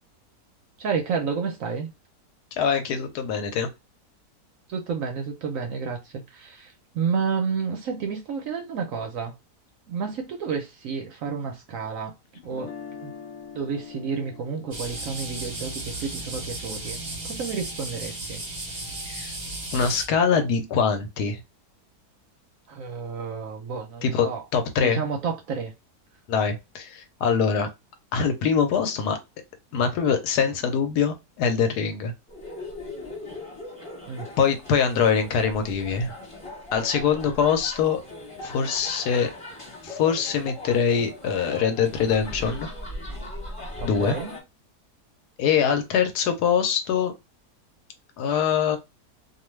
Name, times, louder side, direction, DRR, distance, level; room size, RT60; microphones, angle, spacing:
voice 1, 0.8-1.9 4.7-9.3 9.9-12.1 12.4-12.7 13.0-13.1 13.5-18.4 18.7-18.9 22.7-24.4 24.8-25.7 34.1-34.3 43.8-44.3, right 5 dB, 70° right, 0.8 m, -30 dB
voice 2, 2.5-3.7 19.1-19.4 19.7-21.4 24.0-24.3 24.5-25.0 26.3-27.7 28.1-29.2 29.7-32.1 34.4-36.2 36.7-38.0 38.4-39.3 39.8-42.7 43.8-44.2 45.4-47.1 48.2-48.8, left 6 dB, 75° left, 1.2 m, -23 dB
Guitar, 12.4-18.4, left 7 dB, 40° left, 0.7 m, -45 dB
sound 1, 14.7-20.1, right 2 dB, 35° right, 0.7 m, -35 dB
sound 2, 32.3-44.4, left 2 dB, 20° left, 1.1 m, -39 dB
2.6 x 2.4 x 3.1 m
omnidirectional pair, 1.8 m